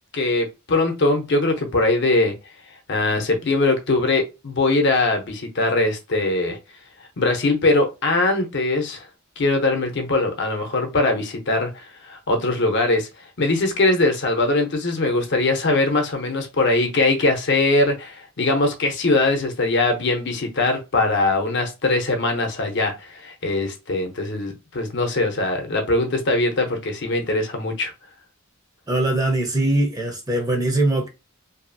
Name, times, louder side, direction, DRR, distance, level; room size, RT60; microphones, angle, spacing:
voice 1, 0.1-2.3 2.9-6.6 7.2-9.1 9.4-27.9, left 2 dB, 55° left, 0.7 m, -21 dB
voice 2, 28.9-31.1, right 2 dB, 15° right, 0.6 m, -21 dB
2.6 x 2.4 x 2.5 m
head